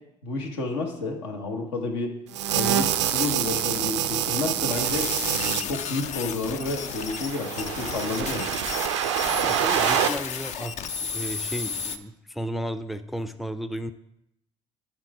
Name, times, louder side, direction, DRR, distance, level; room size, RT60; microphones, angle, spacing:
voice 1, 0.2-2.2 2.5-8.5, left 3 dB, 80° left, 2 dB, 1.0 m, -30 dB
sound 1, 2.3-5.6 6.7-10.1, right 10 dB, 85° right, 0.4 m, -26 dB
sound 2, 4.7-12.0, left 6 dB, 55° left, 0.5 m, -33 dB
voice 2, 9.4-13.9, equal, ahead, 10 dB, 0.4 m, -34 dB
8.9 x 3.7 x 4.7 m, 0.83 s
hypercardioid pair, 60°, 14 cm